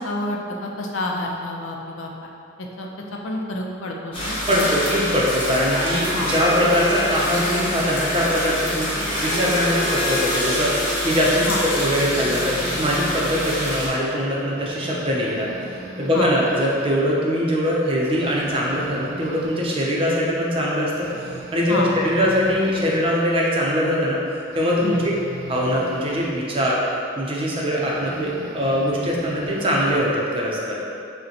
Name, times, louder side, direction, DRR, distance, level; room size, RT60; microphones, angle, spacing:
voice 1, 0.0-2.3 2.8-2.9 3.2-4.6 6.1-6.3 11.5-11.6 16.1-16.3 21.7-21.9 24.8-25.0, left 2 dB, 85° left, 0 dB, 0.5 m, -28 dB
sound 1, 4.1-13.9, left 1 dB, 25° left, 0.9 m, -26 dB
voice 2, 4.5-15.5 16.0-21.1 21.5-24.2 24.5-25.0 25.5-26.8 27.2-30.8, equal, 30° right, -4 dB, 0.5 m, -22 dB
Harp, 5.5-14.2, equal, 55° left, 0.9 m, -31 dB
sound 2, 11.8-13.4 13.8-14.0 14.3-17.1 17.4-17.5 17.9-19.8 20.3-20.4 20.8-23.2 24.5-26.4 27.7-30.1, right 2 dB, 80° right, 0.5 m, -38 dB
6.3 x 2.1 x 2.8 m, 2.6 s
head